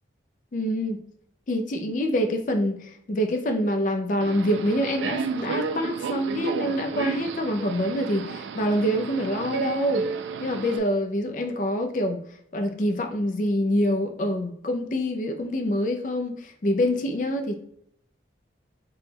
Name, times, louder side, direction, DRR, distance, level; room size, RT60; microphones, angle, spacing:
voice 1, 0.5-1.0 1.5-10.0 10.4-12.2 12.5-17.6, equal, 45° left, 5 dB, 0.4 m, -26 dB
Subway metro underground, 4.2-10.8, right 5 dB, 80° right, 0.3 m, -32 dB
3.9 x 2.3 x 3.3 m, 0.67 s
head